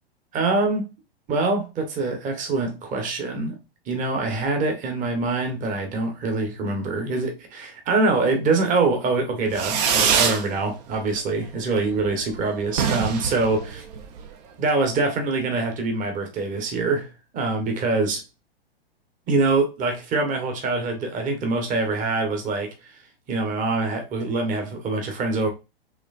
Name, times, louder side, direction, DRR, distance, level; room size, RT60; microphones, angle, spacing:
voice 1, 0.3-0.9 1.3-3.6 3.9-13.8 14.6-17.1 17.3-18.2 19.3-22.9 23.3-25.5, right 3 dB, 25° right, 1.3 m, -24 dB
Fireworks, 9.5-10.4 10.8-11.4 11.6-11.7 12.0-12.1 12.3-12.4 12.7-14.3, right 7 dB, 40° right, 0.9 m, -23 dB
4.9 x 3.2 x 2.5 m
hypercardioid pair, 115°, 31 cm